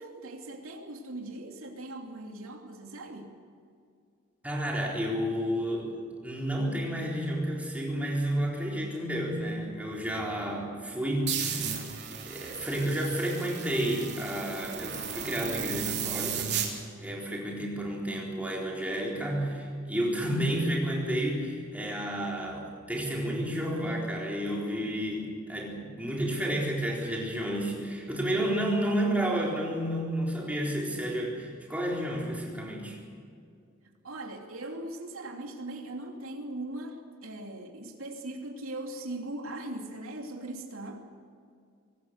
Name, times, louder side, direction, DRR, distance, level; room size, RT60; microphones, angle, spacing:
voice 1, 0.0-3.3 34.0-41.1, right 1 dB, 80° right, 2 dB, 2.9 m, -40 dB
voice 2, 4.4-5.9 6.2-11.8 12.1-16.6 17.0-33.0, right 1 dB, 5° right, -3 dB, 4.1 m, -31 dB
sound 1, 11.3-16.7, right 7 dB, 50° right, 3.4 m, -35 dB
24.0 x 18.5 x 6.6 m, 2.3 s
head